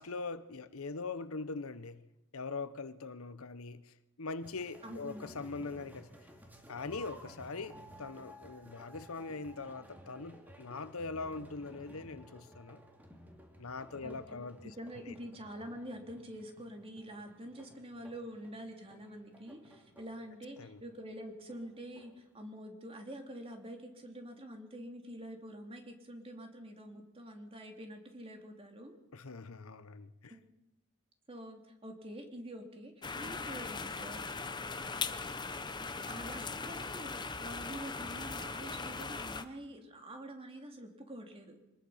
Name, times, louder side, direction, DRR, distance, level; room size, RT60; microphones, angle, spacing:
voice 1, 0.0-2.0 2.3-6.1 6.7-12.8 13.6-14.7 15.1-15.2 20.6-20.8 29.1-30.3, left 3 dB, 75° left, 1.0 m, -42 dB
sound 1, 4.4-22.3, equal, 10° right, 2.7 m, -56 dB
voice 2, 4.8-5.3 14.0-29.0 30.3-30.4 31.3-34.2 35.9-41.6, equal, 25° right, 2.9 m, -47 dB
sound 2, 33.0-39.4, left 4 dB, 20° left, 0.9 m, -39 dB
25.0 x 20.0 x 5.7 m
head